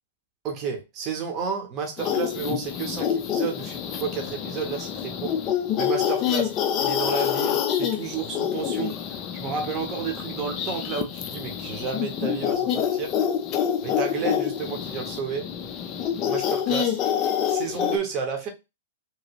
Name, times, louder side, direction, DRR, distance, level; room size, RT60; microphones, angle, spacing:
voice 1, 0.4-5.3 5.8-13.1 13.8-15.5 16.3-17.0 17.5-18.5, right 6 dB, 25° right, 0.8 m, -31 dB
sound 1, 2.0-18.0, left 9 dB, 25° left, 0.4 m, -27 dB
3.0 x 2.8 x 2.8 m
hypercardioid pair, 160°, 0 cm